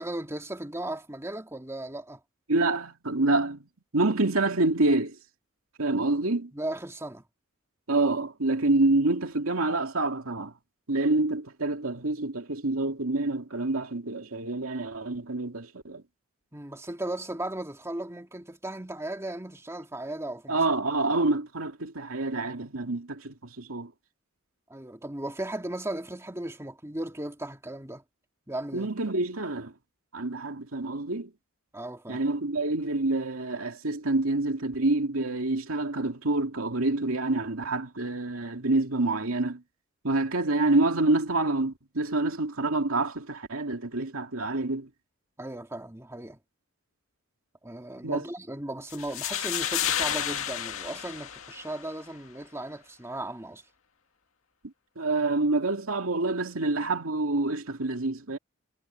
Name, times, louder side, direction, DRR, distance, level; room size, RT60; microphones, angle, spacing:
voice 1, 0.0-2.2 6.5-7.2 16.5-20.6 21.0-21.1 24.7-28.0 28.5-28.9 31.7-32.2 45.4-46.4 47.6-53.6, right 1 dB, 15° right, 2.4 m, -36 dB
voice 2, 2.5-3.6 3.9-5.2 5.8-6.5 7.9-10.5 10.9-16.0 20.5-23.9 28.7-29.7 30.1-31.3 32.1-39.6 40.0-44.9 48.0-48.2 55.0-58.4, right 2 dB, 80° right, 2.5 m, -27 dB
sound 1, 48.9-51.9, left 10 dB, 75° left, 2.0 m, -31 dB
head